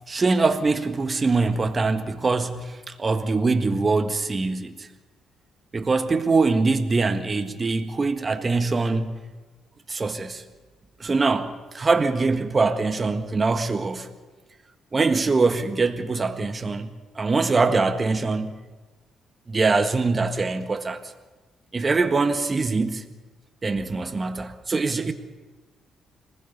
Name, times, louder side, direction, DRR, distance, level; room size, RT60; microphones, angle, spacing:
voice 1, 0.1-4.9 5.7-9.2 9.9-10.4 11.0-14.1 14.9-16.9 17.1-18.6 19.5-21.1 21.7-23.0 23.6-25.1, right 3 dB, 30° right, 1.6 m, -23 dB
26.0 x 20.0 x 5.5 m
cardioid pair, 90°, 0 cm